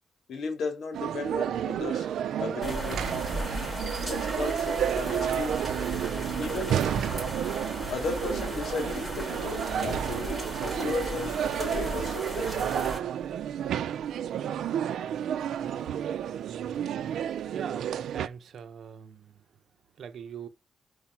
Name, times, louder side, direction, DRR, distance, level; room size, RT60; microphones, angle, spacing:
voice 1, 0.3-2.1 2.4-3.2 4.1-5.6 6.4-6.9 7.9-12.7, left 4 dB, 75° left, 2.8 m, -35 dB
sound 1, 0.9-18.3, right 9 dB, 90° right, 0.6 m, -31 dB
sound 2, 2.6-13.0, right 1 dB, 5° left, 4.2 m, -36 dB
voice 2, 17.5-19.4 20.0-20.5, right 7 dB, 65° right, 0.9 m, -41 dB
5.5 x 5.3 x 5.9 m
wide cardioid pair, 140°, 0 cm